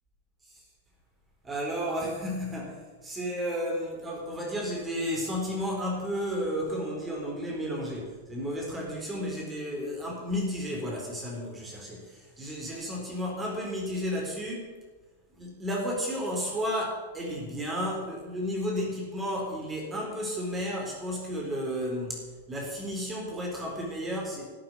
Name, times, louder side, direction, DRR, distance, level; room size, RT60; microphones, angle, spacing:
voice 1, 1.4-14.7 15.3-22.2 22.5-24.5, equal, 15° right, -1 dB, 4.0 m, -32 dB
12.5 x 7.6 x 9.6 m, 1.3 s
hypercardioid pair, 100°, 0 cm